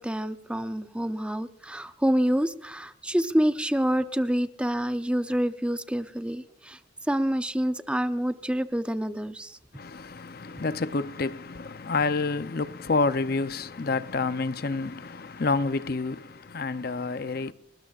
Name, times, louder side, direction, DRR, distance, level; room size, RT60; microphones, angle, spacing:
voice 1, 0.0-6.8 7.1-9.6, equal, 5° right, 0.6 m, -27 dB
voice 2, 9.7-17.5, left 3 dB, 50° left, 0.6 m, -28 dB
29.5 x 20.0 x 2.5 m
head